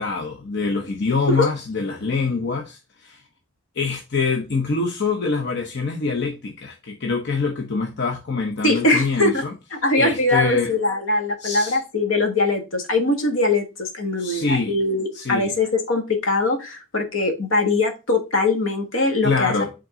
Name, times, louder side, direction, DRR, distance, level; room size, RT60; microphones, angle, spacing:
voice 1, 0.0-3.2 3.8-9.5 10.0-10.7 11.4-11.8 14.2-14.8 15.1-15.5 19.2-19.7, left 4 dB, 55° left, 0.8 m, -24 dB
voice 2, 8.6-9.4 9.8-19.5, left 2 dB, 75° left, 1.5 m, -21 dB
7.7 x 3.8 x 3.7 m
head